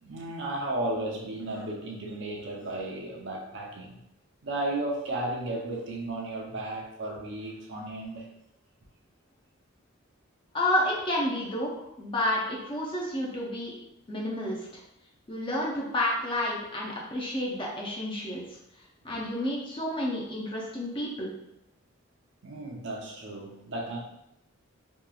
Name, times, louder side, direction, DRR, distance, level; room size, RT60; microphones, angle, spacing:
voice 1, 0.0-4.0 4.4-8.3 19.1-19.2 22.4-24.0, right 1 dB, 60° right, -1 dB, 0.5 m, -34 dB
voice 2, 10.5-13.7 14.1-14.8 15.3-18.4 19.0-21.3, left 1 dB, 25° left, -3 dB, 0.5 m, -30 dB
2.8 x 2.3 x 2.3 m, 0.82 s
head